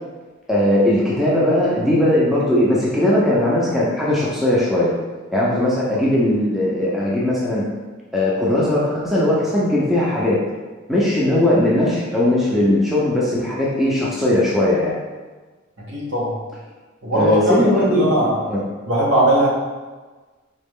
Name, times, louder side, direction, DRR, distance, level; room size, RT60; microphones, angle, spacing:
voice 1, 0.5-4.9 5.3-7.6 8.1-10.4 10.9-14.9 17.1-18.6, left 1 dB, ahead, -7 dB, 0.6 m, -18 dB
voice 2, 15.9-16.3 17.0-17.6 17.9-18.3 18.9-19.5, right 1 dB, 60° right, -6 dB, 1.4 m, -19 dB
4.1 x 3.1 x 3.6 m, 1.3 s
head